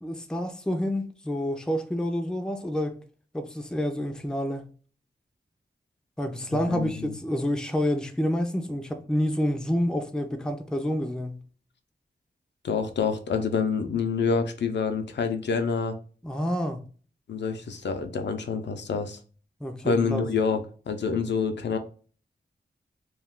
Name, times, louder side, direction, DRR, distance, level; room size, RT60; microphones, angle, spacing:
voice 1, 0.0-3.0 3.3-4.6 6.2-11.4 16.2-16.8 19.6-20.2, equal, 5° left, 0.4 m, -28 dB
voice 2, 6.7-7.1 12.6-16.0 17.3-19.2 19.8-21.8, left 5 dB, 80° left, 0.4 m, -27 dB
2.3 x 2.2 x 3.5 m
wide cardioid pair, 110°, 18 cm